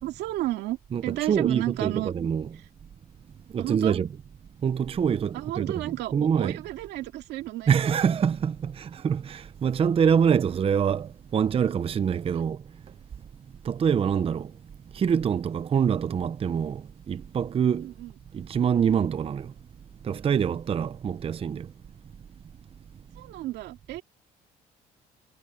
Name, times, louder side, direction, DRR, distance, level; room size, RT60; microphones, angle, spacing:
voice 1, 0.0-2.3 3.6-4.0 5.3-7.7 17.8-18.1 18.9-19.1 23.2-24.0, right 16 dB, 85° right, 2.3 m, -32 dB
voice 2, 0.9-2.5 3.5-4.1 4.6-6.6 7.7-12.6 13.6-14.5 14.9-17.9 18.3-19.5 20.0-21.7, right 7 dB, 35° right, 0.7 m, -25 dB
cardioid pair, 110°, 17 cm